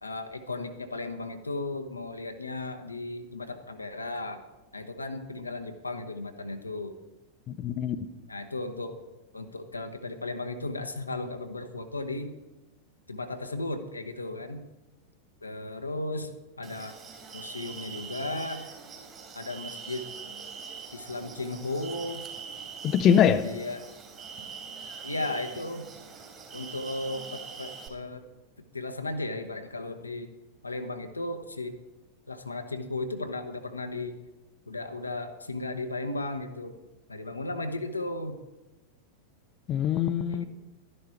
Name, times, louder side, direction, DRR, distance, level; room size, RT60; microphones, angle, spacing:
voice 1, 0.0-4.4 4.7-7.0 8.3-9.0 9.3-12.3 13.1-14.6 15.4-17.0 17.3-18.6 19.3-20.1 20.9-22.3 23.2-23.9 25.0-25.9 26.5-28.3 28.7-30.3 30.6-31.8 32.3-34.2 34.7-36.8 37.1-38.4 40.3-40.4, left 2 dB, 80° left, 6 dB, 1.1 m, -35 dB
voice 2, 7.6-8.1 22.8-23.4 39.7-40.4, left 8 dB, 35° left, 10 dB, 0.6 m, -23 dB
sound 1, 16.6-27.9, right 5 dB, 25° right, 2.5 m, -43 dB
12.5 x 11.0 x 4.4 m, 1.1 s
figure-of-eight pair, 90°, 0 cm